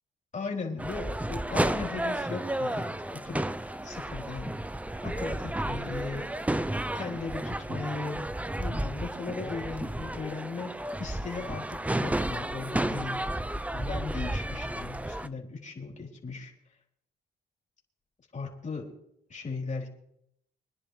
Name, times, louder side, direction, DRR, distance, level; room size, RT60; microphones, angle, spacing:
voice 1, 0.3-4.5 5.0-6.3 6.9-8.3 8.6-13.2 13.7-16.5 18.3-18.9 19.3-19.9, left 4 dB, 40° left, 0 dB, 3.7 m, -37 dB
sound 1, 0.8-15.3, right 1 dB, 5° right, 0.6 m, -32 dB
25.0 x 10.5 x 3.3 m, 0.73 s
cardioid pair, 90°, 20 cm